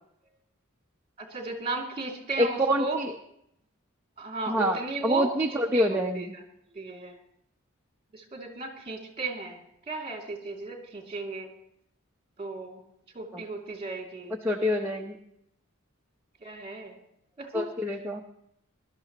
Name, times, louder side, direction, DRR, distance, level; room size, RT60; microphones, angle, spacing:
voice 1, 1.3-3.0 4.2-5.3 5.7-6.3 6.8-7.1 8.3-9.6 9.9-11.5 12.4-12.8 13.2-14.3 16.4-16.9 17.4-17.7, right 3 dB, 30° right, 1 dB, 2.6 m, -35 dB
voice 2, 2.4-3.2 4.5-6.3 13.3-13.4 14.4-15.2 17.5-18.2, equal, 10° right, -1 dB, 0.8 m, -26 dB
21.0 x 12.5 x 3.0 m, 0.73 s
head